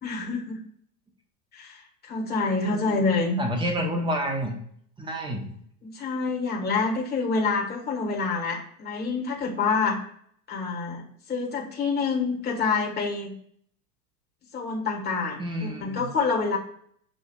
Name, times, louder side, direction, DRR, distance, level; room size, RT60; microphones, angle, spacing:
voice 1, 0.0-0.6 1.5-3.4 5.8-10.0 10.5-11.0 11.3-13.3 14.5-16.6, left 4 dB, 20° left, -1 dB, 1.5 m, -27 dB
voice 2, 2.6-3.0 3.4-4.6 5.0-5.6 15.4-16.1, equal, 10° right, 2 dB, 1.0 m, -29 dB
7.4 x 2.7 x 2.3 m, 0.64 s
hypercardioid pair, 100°, 48 cm